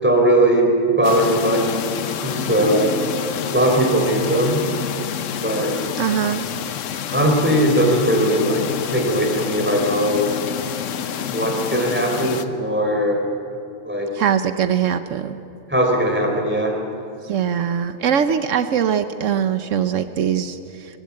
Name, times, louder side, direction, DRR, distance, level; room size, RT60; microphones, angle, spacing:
voice 1, 0.0-1.8 2.2-3.0 3.5-4.6 5.4-5.8 7.1-10.3 11.3-13.3 13.9-14.1 15.7-16.8, right 1 dB, 10° right, 1 dB, 3.7 m, -19 dB
sound 1, 1.0-12.5, left 9 dB, 80° left, 1.1 m, -28 dB
voice 2, 6.0-6.5 14.2-15.4 17.3-20.6, right 8 dB, 85° right, 10 dB, 1.2 m, -21 dB
22.0 x 18.5 x 8.5 m, 2.5 s
omnidirectional pair, 1.3 m